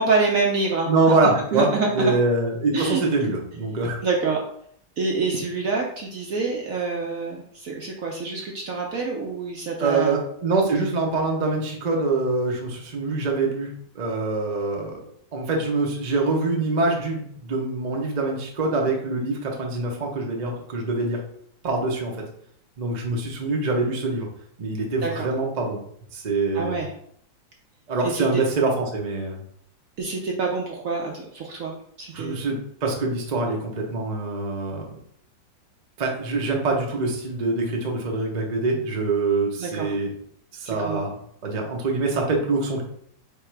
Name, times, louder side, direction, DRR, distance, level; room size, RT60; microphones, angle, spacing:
voice 1, 0.0-0.9 1.2-2.1 2.7-3.0 4.0-4.4 5.0-10.2 25.0-25.3 26.5-26.9 28.0-28.4 30.0-32.4 39.6-39.9 40.6-41.1, right 4 dB, 65° right, -1 dB, 0.9 m, -26 dB
voice 2, 0.9-1.7 1.9-4.0 9.8-13.7 13.9-15.0 15.3-21.2 21.6-22.1 22.8-24.3 24.6-25.8 26.1-26.8 27.9-29.4 32.1-34.8 36.0-40.1 40.5-41.1 41.4-42.8, right 3 dB, 45° right, 0 dB, 0.5 m, -24 dB
3.6 x 3.0 x 4.6 m, 0.65 s
omnidirectional pair, 2.0 m